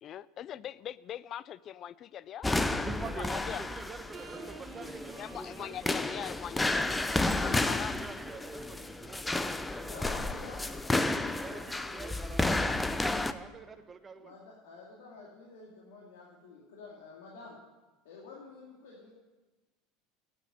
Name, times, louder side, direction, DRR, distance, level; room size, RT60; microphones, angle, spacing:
voice 1, 0.0-2.5 3.2-3.7 5.2-7.0 7.3-8.0, left 10 dB, 45° left, 19 dB, 0.4 m, -41 dB
sound 1, 2.4-13.3, left 2 dB, 10° left, 0.7 m, -32 dB
voice 2, 2.8-5.2 5.6-5.9 7.3-7.7 8.0-10.4 11.4-14.3, right 5 dB, 25° right, 9 dB, 1.1 m, -46 dB
sound 2, 4.1-6.0 7.4-9.2, right 7 dB, 45° right, 1.4 m, -52 dB
voice 3, 9.8-11.9 13.7-13.8 14.2-17.6 18.0-19.1, left 3 dB, 80° left, -4 dB, 2.5 m, -50 dB
9.1 x 9.0 x 9.8 m, 1.2 s
hypercardioid pair, 95°, 0 cm